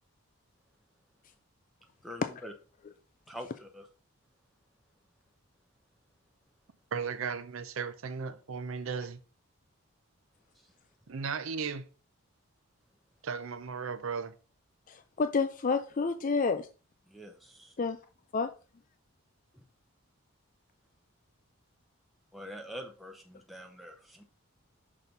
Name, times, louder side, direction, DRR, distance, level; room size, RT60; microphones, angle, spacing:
voice 1, 2.0-2.5 3.3-3.9 10.5-10.7 17.1-17.7 19.5-19.6 22.3-24.2, equal, ahead, 0.7 m, -45 dB
voice 2, 6.9-9.2 11.1-11.8 13.2-14.3, right 5 dB, 65° right, 0.6 m, -36 dB
voice 3, 14.9-16.7 17.8-18.0 18.3-18.5, left 4 dB, 35° left, 0.4 m, -29 dB
6.1 x 4.1 x 5.1 m
head